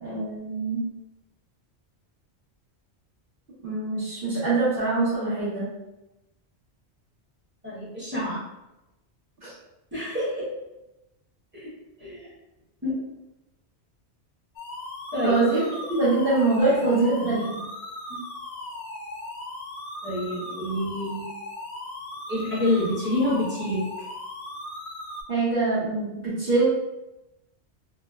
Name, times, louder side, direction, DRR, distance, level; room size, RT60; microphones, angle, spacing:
voice 1, 0.0-0.8 3.6-5.7 9.4-9.5 15.2-15.6 15.9-17.4 25.3-26.6, right 3 dB, 55° right, -13 dB, 1.1 m, -24 dB
voice 2, 7.6-8.4 9.9-10.5 11.5-11.7 12.0-12.3 12.8-13.0 15.1-15.4 16.9-17.6 18.1-18.2 20.0-21.3 22.3-23.8, left 1 dB, 10° right, -9 dB, 0.9 m, -28 dB
sound 1, 14.6-25.2, left 1 dB, 75° left, 0.9 m, -38 dB
3.3 x 2.0 x 2.3 m, 0.96 s
omnidirectional pair, 1.2 m